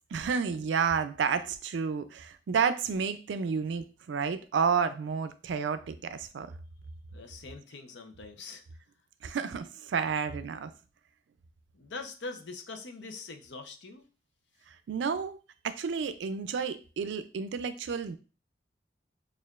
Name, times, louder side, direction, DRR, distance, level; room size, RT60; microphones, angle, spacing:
voice 1, 0.1-6.5 9.2-10.7 14.7-15.4 15.6-18.2, right 6 dB, 90° right, 11 dB, 0.4 m, -31 dB
voice 2, 7.1-8.6 11.7-14.1, left 3 dB, 80° left, 4 dB, 0.6 m, -43 dB
6.4 x 2.4 x 2.4 m, 0.35 s
head